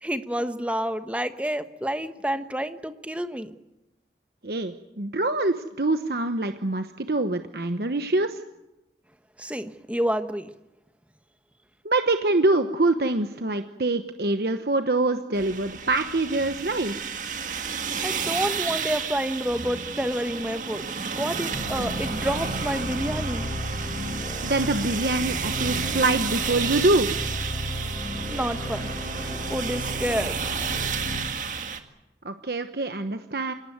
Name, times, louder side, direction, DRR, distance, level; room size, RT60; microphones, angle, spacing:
voice 1, 0.0-3.5 9.4-10.5 18.0-20.9 21.1-23.5 28.3-28.9 29.5-30.3, equal, 5° right, 9 dB, 1.2 m, -29 dB
voice 2, 4.4-8.4 11.8-17.1 24.4-27.1 32.2-33.5, right 2 dB, 65° right, 8 dB, 1.1 m, -25 dB
sound 1, 15.3-31.8, right 6 dB, 45° right, 1.9 m, -31 dB
sound 2, 21.5-31.2, equal, 15° left, 5.4 m, -34 dB
26.5 x 18.0 x 9.5 m, 0.98 s
head